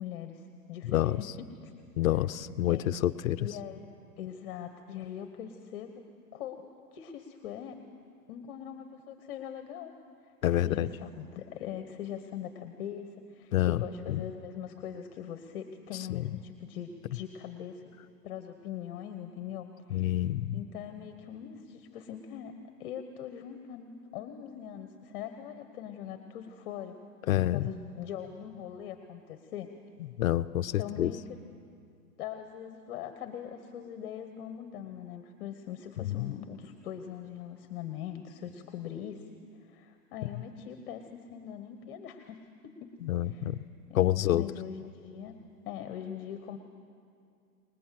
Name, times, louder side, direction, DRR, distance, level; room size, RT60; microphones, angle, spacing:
voice 1, 0.0-1.7 2.7-2.9 3.4-3.8 4.2-6.0 6.3-7.8 8.3-9.9 10.2-17.9 18.2-20.2 20.5-27.0 27.5-29.7 30.8-31.4 32.2-39.2 39.6-42.9 43.2-43.5 43.9-45.3 45.6-46.6, left 9 dB, 35° left, 7 dB, 1.1 m, -42 dB
voice 2, 0.8-1.2 2.0-3.5 10.4-10.9 13.5-13.8 14.1-14.2 16.2-16.3 19.9-20.6 27.3-27.6 30.2-31.1 36.0-36.3 43.0-43.6 43.9-44.4, left 13 dB, 55° left, 11 dB, 0.7 m, -27 dB
24.5 x 20.5 x 7.7 m, 2.4 s
hypercardioid pair, 155°, 49 cm